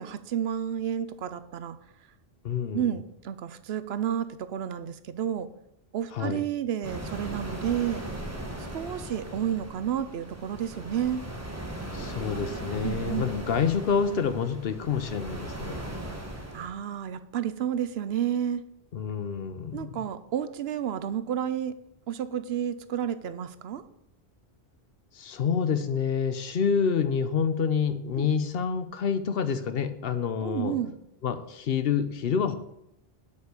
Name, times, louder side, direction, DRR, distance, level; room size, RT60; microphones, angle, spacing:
voice 1, 0.0-1.8 2.7-5.5 5.9-8.0 8.7-11.2 12.8-13.3 16.5-18.6 19.7-21.7 22.1-23.8 28.2-28.3 30.4-30.9, right 9 dB, 75° right, 13 dB, 0.8 m, -31 dB
voice 2, 2.4-2.9 6.1-6.4 11.9-15.8 18.9-20.1 25.2-30.8 31.2-32.6, left 6 dB, 65° left, 12 dB, 0.9 m, -28 dB
sound 1, 6.8-16.7, right 1 dB, 15° right, 1.3 m, -38 dB
8.1 x 5.5 x 6.6 m, 0.81 s
omnidirectional pair, 1.1 m